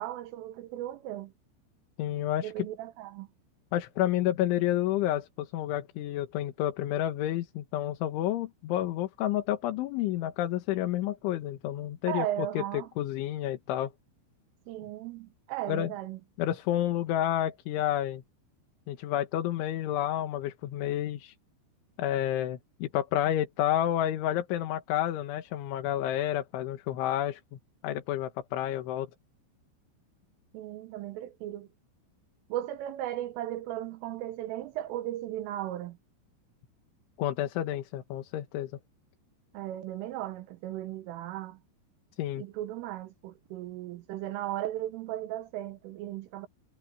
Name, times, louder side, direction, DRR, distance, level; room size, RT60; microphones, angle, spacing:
voice 1, 0.0-1.3 2.4-3.3 12.1-12.9 14.7-16.2 30.5-31.7 32.5-36.0 39.5-41.6 42.4-46.5, right 13 dB, 85° right, 3.7 m, -36 dB
voice 2, 2.0-2.7 3.7-12.6 13.0-13.9 15.7-15.9 16.4-18.2 18.9-21.4 22.0-27.4 27.8-29.1 37.2-38.7 42.2-42.4, left 12 dB, 75° left, 3.8 m, -30 dB
omnidirectional pair, 5.7 m